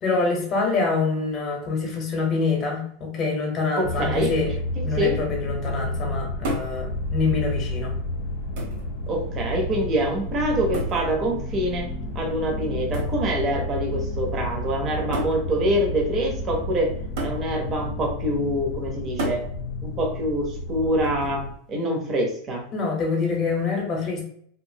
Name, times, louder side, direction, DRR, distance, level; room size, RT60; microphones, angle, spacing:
voice 1, 0.0-4.5 4.8-8.0 22.7-24.2, left 4 dB, 25° left, 0 dB, 0.9 m, -25 dB
sound 1, 3.8-21.5, left 1 dB, 65° left, 0.5 m, -31 dB
voice 2, 3.8-4.3 4.8-5.2 9.1-11.9 12.1-16.9 17.2-19.4 19.8-22.6, right 1 dB, 25° right, 0 dB, 0.7 m, -25 dB
sound 2, 6.4-6.8 7.8-7.9 8.6-8.9 10.7-11.1 12.9-13.2 14.3-14.4 15.1-15.4 17.2-17.5 19.2-19.5 21.0-21.4, right 1 dB, 60° right, 1.0 m, -31 dB
2.8 x 2.5 x 2.7 m, 0.63 s
supercardioid pair, 160°, 0 cm